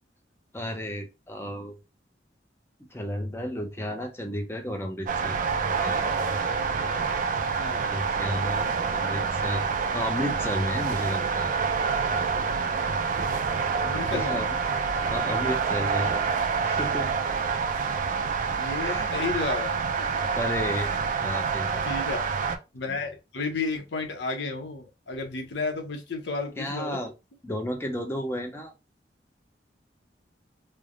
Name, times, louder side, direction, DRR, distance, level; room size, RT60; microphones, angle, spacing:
voice 1, 0.5-1.8 2.9-5.4 5.8-6.0 7.8-9.7 9.9-11.6 14.1-14.6 15.1-16.2 16.6-17.1 18.8-19.1 20.4-20.9 21.2-21.9 26.6-27.1 27.4-28.7, equal, 15° left, 4 dB, 0.5 m, -32 dB
sound 1, 5.1-22.6, right 5 dB, 45° right, 0.3 m, -27 dB
voice 2, 13.8-14.4 18.6-20.3 21.8-22.2 22.7-27.0, left 4 dB, 85° left, 4 dB, 0.7 m, -32 dB
3.2 x 2.0 x 2.3 m, 0.26 s
head